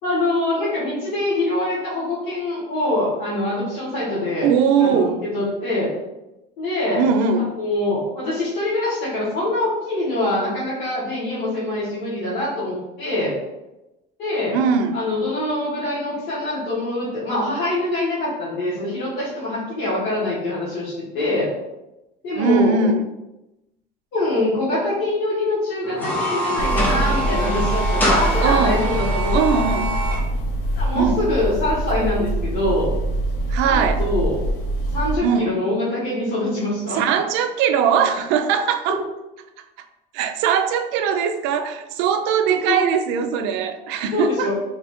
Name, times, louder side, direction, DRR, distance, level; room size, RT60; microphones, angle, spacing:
voice 1, 0.0-4.5 4.8-5.9 6.6-7.0 7.6-13.3 14.2-14.6 14.9-21.5 22.2-22.8 24.1-29.4 30.7-32.9 33.6-34.4 34.9-37.0 42.7-42.8 44.1-44.5, left 1 dB, 60° left, -11 dB, 1.4 m, -24 dB
voice 2, 4.4-5.2 7.0-7.5 14.5-15.0 22.4-23.0 28.4-28.8 29.3-29.9 30.9-31.2 33.5-34.0 35.2-35.5 36.9-39.0 40.1-44.5, right 6 dB, 70° right, 7 dB, 0.4 m, -20 dB
sound 1, 25.8-30.2, equal, 10° left, 0.6 m, -24 dB
sound 2, 26.6-35.2, right 1 dB, 75° left, 0.6 m, -24 dB
3.2 x 2.4 x 4.2 m, 0.98 s
cardioid pair, 175°, 19 cm